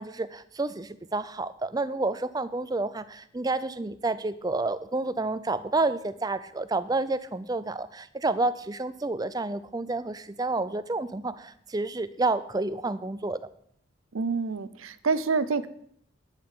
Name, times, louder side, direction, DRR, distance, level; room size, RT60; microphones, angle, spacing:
voice 1, 0.0-13.4, right 2 dB, 20° right, 14 dB, 0.4 m, -29 dB
voice 2, 14.1-15.7, right 4 dB, 85° right, 15 dB, 0.7 m, -27 dB
10.5 x 9.0 x 5.6 m, 0.67 s
head